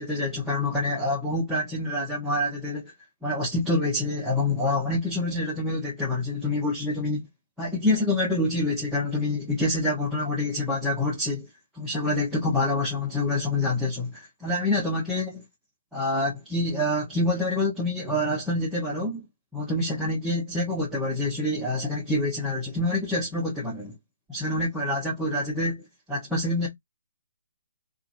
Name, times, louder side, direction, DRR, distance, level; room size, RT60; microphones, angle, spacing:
voice 1, 0.0-2.9 3.2-7.2 7.6-11.5 11.7-15.4 15.9-19.2 19.5-24.0 24.3-26.7, left 2 dB, ahead, 1.0 m, -26 dB
2.8 x 2.4 x 2.7 m
figure-of-eight pair, 140°, 0 cm